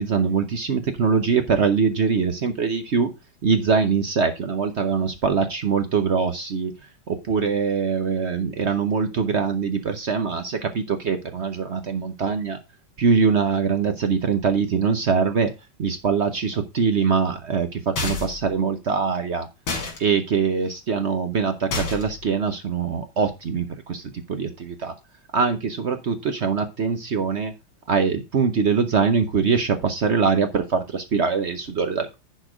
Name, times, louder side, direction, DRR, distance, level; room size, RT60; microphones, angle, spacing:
voice 1, 0.0-3.1 3.4-6.7 7.3-12.6 13.0-15.5 15.8-19.5 20.0-24.9 25.3-27.5 27.9-32.1, right 5 dB, 60° right, 8 dB, 0.7 m, -23 dB
sound 1, 18.0-18.5 19.7-20.0 21.7-22.2, left 3 dB, 65° left, 3.1 m, -28 dB
10.5 x 4.5 x 4.9 m, 0.26 s
omnidirectional pair, 2.3 m